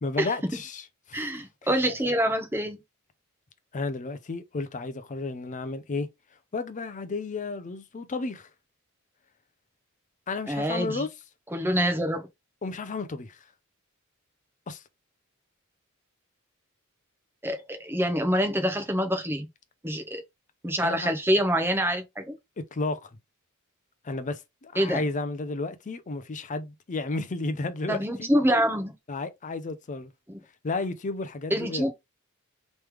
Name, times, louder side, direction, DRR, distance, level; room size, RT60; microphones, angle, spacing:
voice 1, 0.0-1.3 3.7-6.1 6.5-8.5 10.3-11.1 12.6-13.4 14.7-14.8 20.8-21.1 22.6-23.1 24.0-28.3 29.1-30.1 30.6-31.9, left 3 dB, 35° left, 0.5 m, -32 dB
voice 2, 1.1-2.8 10.5-11.0 11.5-12.3 17.4-19.5 19.8-20.2 20.6-22.4 24.8-25.0 27.9-28.9 30.3-30.4 31.5-31.9, equal, 10° right, 0.8 m, -26 dB
3.3 x 3.1 x 3.4 m
head